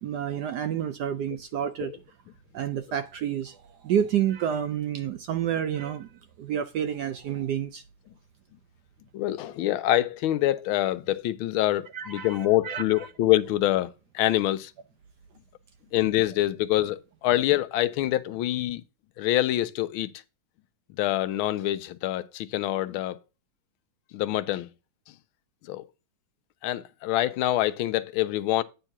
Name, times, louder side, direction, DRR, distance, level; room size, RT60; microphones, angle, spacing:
voice 1, 0.0-2.0 2.5-3.6 3.8-6.1 6.4-7.8 11.9-12.4 12.6-12.8, right 9 dB, 75° right, 1.0 m, -29 dB
voice 2, 9.1-14.7 15.9-18.8 19.2-20.1 21.0-23.2 24.1-24.7 25.7-25.8 26.6-28.6, left 14 dB, 90° left, 1.4 m, -25 dB
9.1 x 3.7 x 5.8 m
omnidirectional pair, 2.2 m